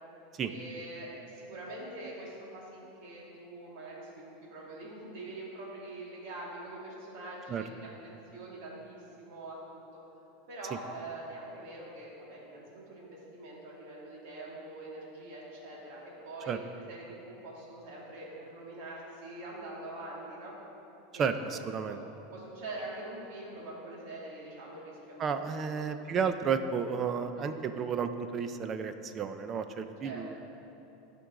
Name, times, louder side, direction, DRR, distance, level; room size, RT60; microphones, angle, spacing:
voice 1, 0.4-7.9 8.3-9.8 10.5-20.5 21.1-21.5 21.9-22.0 22.3-26.1 27.3-27.6 30.0-30.2, right 2 dB, 60° right, -5 dB, 2.3 m, -44 dB
voice 2, 21.2-22.0 25.2-30.4, right 6 dB, 25° right, 9 dB, 0.4 m, -32 dB
15.0 x 5.3 x 3.8 m, 3.0 s
supercardioid pair, 155°, 0 cm